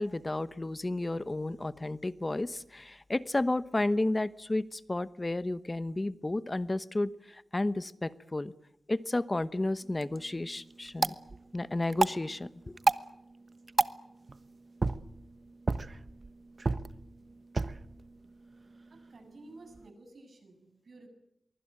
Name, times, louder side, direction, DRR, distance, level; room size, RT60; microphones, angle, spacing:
voice 1, 0.0-8.5 8.9-11.1 11.5-12.8, left 2 dB, 30° left, 1.0 m, -32 dB
sound 1, 9.8-19.9, right 3 dB, 50° right, 1.1 m, -35 dB
voice 2, 18.9-21.1, right 2 dB, 70° right, 7.8 m, -53 dB
23.5 x 23.5 x 9.0 m
wide cardioid pair, 90°, 0 cm